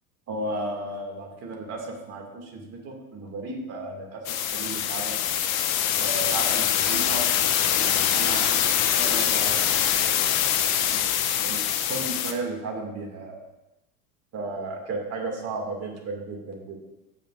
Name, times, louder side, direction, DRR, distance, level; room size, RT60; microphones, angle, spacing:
voice 1, 0.3-5.2 5.9-7.2 7.8-8.6 8.9-9.6 10.9-11.1 11.4-11.6 11.9-13.4 14.3-16.8, right 2 dB, 35° right, 1 dB, 2.2 m, -34 dB
sound 1, 4.2-12.3, left 10 dB, 60° left, 0.9 m, -24 dB
15.5 x 5.8 x 2.5 m, 0.94 s
hypercardioid pair, 90°, 45 cm